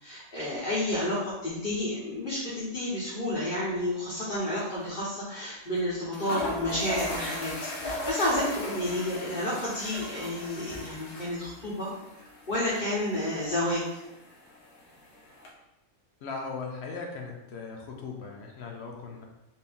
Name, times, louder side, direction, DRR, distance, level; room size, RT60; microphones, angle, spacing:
voice 1, 0.0-7.5 7.8-11.9 12.5-14.0, left 1 dB, 40° left, -9 dB, 0.9 m, -30 dB
sound 1, 4.1-4.3 4.6-4.7 5.7-5.8 6.1-15.5, left 1 dB, 90° left, 1.4 m, -38 dB
voice 2, 16.2-19.3, left 4 dB, 60° left, 0 dB, 0.7 m, -38 dB
4.2 x 2.7 x 3.5 m, 0.95 s
omnidirectional pair, 1.6 m